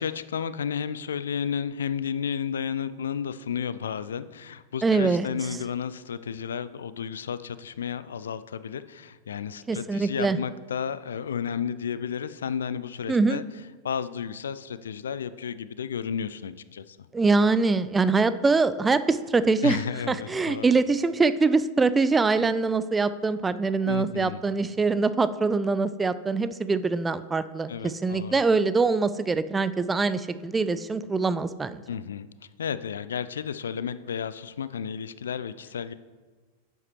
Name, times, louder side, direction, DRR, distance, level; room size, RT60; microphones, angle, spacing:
voice 1, 0.0-13.4 13.8-17.0 19.6-20.7 23.8-24.4 27.7-28.4 31.9-32.3 32.6-35.9, left 7 dB, 65° left, 15 dB, 0.3 m, -32 dB
voice 2, 4.8-5.3 9.7-10.4 13.1-13.4 17.1-19.8 20.1-31.8, right 4 dB, 15° right, 13 dB, 0.3 m, -23 dB
10.5 x 7.7 x 3.0 m, 1.4 s
figure-of-eight pair, 90°, 0 cm